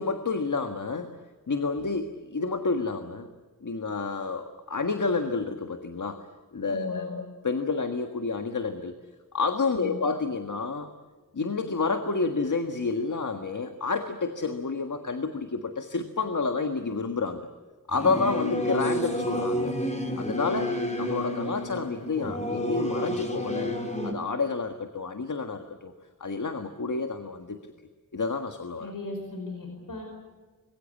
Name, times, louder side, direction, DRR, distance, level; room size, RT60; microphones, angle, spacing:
voice 1, 0.0-3.3 3.6-6.3 6.5-9.0 9.3-10.9 11.3-17.5 17.9-19.7 20.2-25.9 26.2-27.6 28.1-28.9, left 4 dB, 70° left, 6 dB, 1.7 m, -29 dB
voice 2, 6.7-7.1 9.7-10.0 28.8-30.0, left 2 dB, 90° left, 2 dB, 5.1 m, -37 dB
Singing / Musical instrument, 17.9-24.1, left 1 dB, 20° left, 4.1 m, -30 dB
26.0 x 22.0 x 8.4 m, 1.4 s
wide cardioid pair, 80°, 32 cm